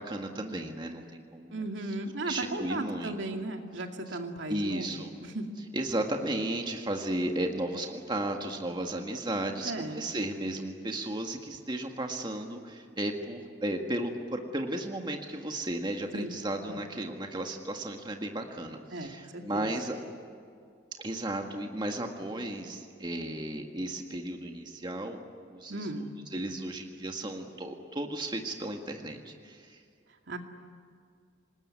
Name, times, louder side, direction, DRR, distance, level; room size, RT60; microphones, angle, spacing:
voice 1, 0.0-1.7 2.2-3.2 4.1-4.2 4.5-5.1 5.7-20.0 21.0-25.2 25.5-29.8, right 1 dB, 25° right, 3 dB, 1.7 m, -34 dB
voice 2, 1.5-5.5 9.6-10.1 16.1-16.3 16.7-16.8 18.9-19.7 25.7-26.1 30.3-30.4, right 2 dB, 75° right, 4 dB, 2.4 m, -36 dB
27.0 x 20.0 x 9.6 m, 2.2 s
head